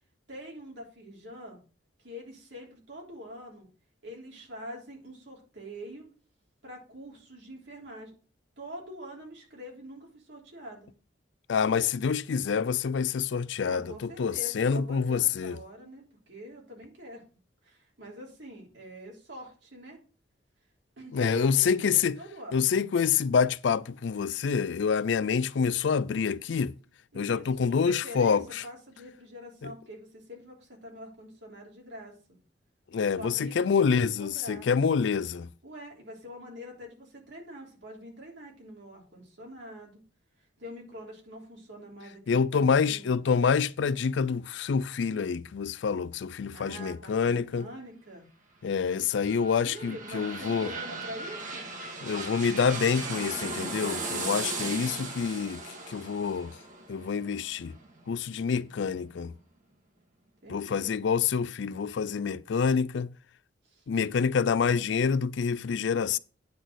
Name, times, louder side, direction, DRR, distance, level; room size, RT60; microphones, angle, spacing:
voice 1, 0.3-1.6 2.0-3.7 4.0-6.1 6.6-8.1 8.6-10.9 13.6-17.2 17.6-20.0 21.0-22.7 27.1-32.4 33.0-34.7 35.6-40.0 40.6-43.2 46.5-48.3 49.6-51.7 60.4-60.9 63.6-63.8, equal, 70° right, 3.2 m, -45 dB
voice 2, 11.5-15.6 21.1-22.1 22.5-26.7 27.1-28.6 29.6-29.7 32.9-35.5 42.3-47.7 48.6-50.7 52.0-55.6 55.9-56.5 56.9-57.7 58.1-59.3 60.5-63.1 63.9-66.2, left 6 dB, 70° left, 0.4 m, -27 dB
sound 1, 48.8-58.5 58.9-59.0, right 3 dB, 40° right, 1.6 m, -37 dB
9.4 x 4.1 x 6.2 m
head